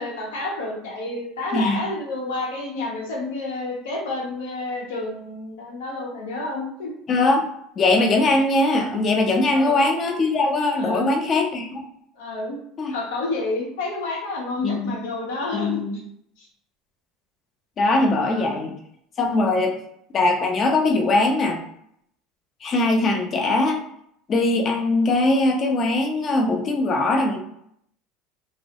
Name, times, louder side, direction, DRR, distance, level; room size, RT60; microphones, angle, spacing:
voice 1, 0.0-6.9 9.5-9.8 10.8-11.1 12.1-12.6 12.9-15.8 16.4-16.5 18.2-18.6, left 2 dB, 80° left, -2 dB, 0.7 m, -30 dB
voice 2, 7.1-7.4 7.8-11.8 12.8-12.9 14.6-14.9 15.5-16.0 17.8-18.7 19.2-19.7 20.1-21.6 22.6-23.8 24.3-27.4, left 2 dB, 40° left, 3 dB, 0.5 m, -21 dB
2.2 x 2.0 x 2.7 m, 0.71 s
hypercardioid pair, 90°, 0 cm